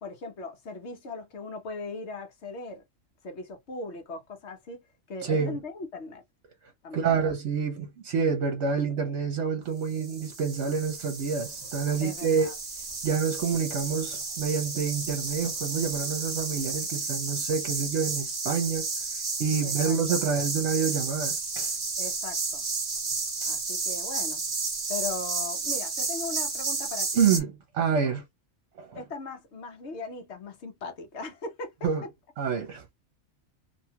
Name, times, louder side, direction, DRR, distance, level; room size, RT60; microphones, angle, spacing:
voice 1, 0.0-2.8 3.2-4.8 5.1-6.2 6.8-7.2 12.0-12.5 19.6-20.2 22.0-22.7 23.5-24.4 24.9-27.1 28.9-31.9, left 3 dB, 60° left, 1.1 m, -38 dB
voice 2, 5.2-5.6 6.9-12.5 13.0-18.9 19.4-21.7 27.2-27.5 27.7-28.2 28.8-28.9 31.8-32.0 32.4-32.8, right 6 dB, 65° right, 1.0 m, -27 dB
sound 1, 9.9-27.4, right 4 dB, 35° right, 0.9 m, -32 dB
2.7 x 2.3 x 2.8 m
omnidirectional pair, 1.3 m